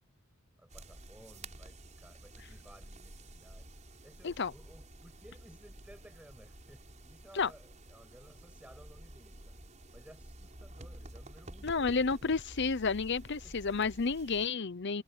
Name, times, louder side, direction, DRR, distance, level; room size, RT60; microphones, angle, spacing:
voice 1, 0.6-9.5 9.9-12.0 13.4-13.7 14.1-14.4, equal, 5° right, 6.1 m, -58 dB
sound 1, 0.7-14.5, right 1 dB, 35° right, 6.2 m, -51 dB
voice 2, 11.6-15.0, left 4 dB, 60° left, 0.8 m, -31 dB
head